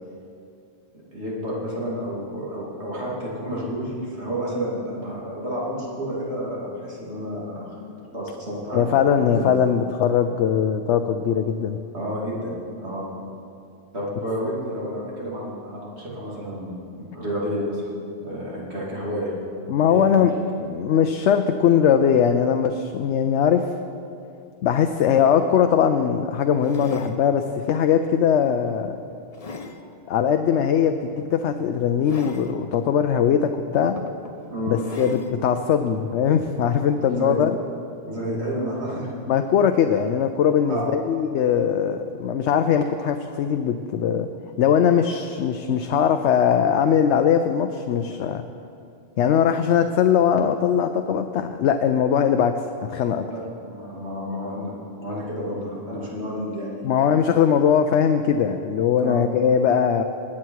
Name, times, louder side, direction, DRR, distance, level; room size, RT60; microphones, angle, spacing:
voice 1, 1.1-7.8 8.1-9.5 11.9-13.1 13.9-17.8 18.2-19.3 19.8-20.3 34.5-34.8 37.0-37.4 38.0-39.1 40.7-40.9 53.3-56.8 59.0-59.2, equal, 75° right, -6 dB, 3.0 m, -30 dB
voice 2, 8.7-11.8 19.7-23.7 24.6-29.0 30.1-34.1 34.7-37.5 39.3-44.3 44.6-48.4 49.2-53.3 56.8-60.0, left 8 dB, 90° left, 7 dB, 0.9 m, -20 dB
sound 1, 25.3-25.5 26.6-27.2 27.8-28.1 28.6-29.8 31.1-31.3 32.0-32.6 33.4-33.5 34.0-34.4 34.8-35.4 36.1-36.2, left 3 dB, 40° left, 0.7 m, -38 dB
20.0 x 8.5 x 4.7 m, 2.5 s
omnidirectional pair, 1.1 m